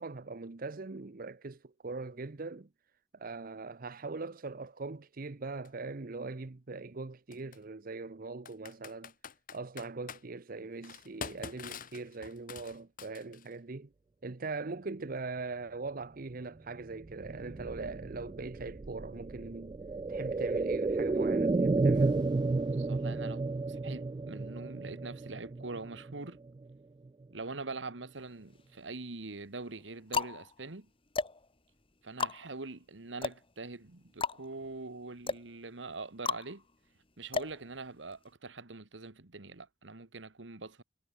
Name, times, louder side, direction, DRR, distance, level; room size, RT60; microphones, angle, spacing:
voice 1, 0.0-2.7 3.1-9.1 9.5-13.9 14.2-19.8 20.1-22.2, right 3 dB, 50° right, 0.8 m, -41 dB
Computer keyboard, 5.6-5.7 7.3-7.6 8.5-10.2 10.8-13.5, left 6 dB, 50° left, 1.0 m, -45 dB
sound 1, 16.9-26.7 27.1-27.2, right 3 dB, 25° right, 0.3 m, -32 dB
voice 2, 22.7-26.4 27.3-30.9 32.0-36.6 37.2-40.8, right 3 dB, 90° right, 1.6 m, -43 dB
sound 2, 28.2-28.9 29.6-38.3, left 4 dB, 30° left, 1.6 m, -37 dB
head